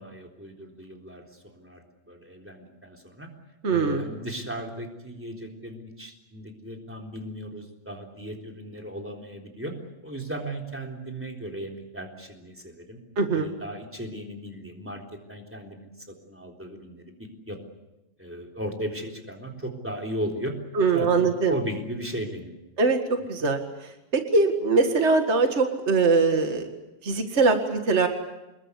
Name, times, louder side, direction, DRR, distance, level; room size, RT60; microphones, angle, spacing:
voice 1, 0.0-3.3 3.7-9.7 10.0-13.0 13.3-17.6 18.2-20.5 20.9-22.5, right 1 dB, 5° right, 1 dB, 3.1 m, -36 dB
voice 2, 3.6-4.0 13.2-13.5 20.7-21.5 22.8-26.7 27.0-28.1, right 4 dB, 45° right, 5 dB, 0.9 m, -22 dB
26.5 x 21.5 x 8.3 m, 0.98 s
omnidirectional pair, 4.3 m